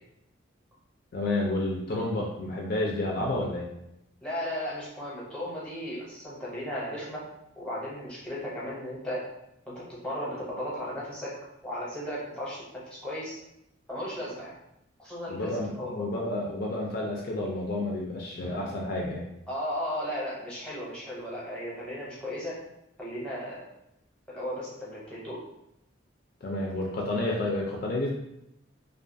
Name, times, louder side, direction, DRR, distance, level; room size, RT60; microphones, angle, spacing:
voice 1, 1.1-3.7 15.3-19.2 26.4-28.1, left 2 dB, 50° left, -1 dB, 0.3 m, -30 dB
voice 2, 4.2-7.2 7.6-9.3 9.7-11.3 11.6-13.4 13.9-14.5 15.0-16.1 19.5-22.6 23.0-23.6 24.3-25.4, equal, 5° left, -7 dB, 0.7 m, -35 dB
2.4 x 2.3 x 2.6 m, 0.83 s
head